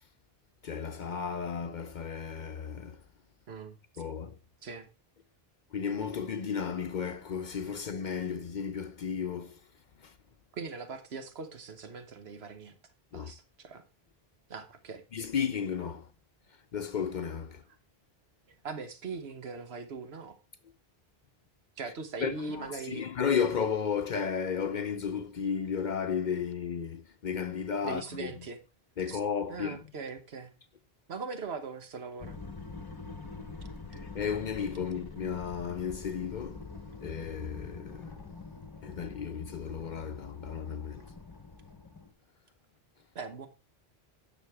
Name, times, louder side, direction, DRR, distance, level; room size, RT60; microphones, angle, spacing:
voice 1, 0.6-3.0 4.0-4.4 5.7-9.6 10.0-10.1 13.1-13.3 15.1-16.1 16.7-17.6 22.2-28.3 29.0-29.8 33.9-36.7 37.0-38.2 38.8-41.1, left 7 dB, 55° left, 0.7 m, -34 dB
voice 2, 3.5-4.0 4.6-4.9 10.5-12.8 13.1-13.8 14.5-15.0 18.5-20.4 21.8-23.1 27.8-28.6 29.1-29.2 29.5-30.5 31.1-32.4 43.1-43.5, right 4 dB, 85° right, 1.4 m, -41 dB
sound 1, 32.2-42.1, left 4 dB, 25° left, 0.9 m, -45 dB
9.7 x 6.9 x 3.5 m
omnidirectional pair, 1.0 m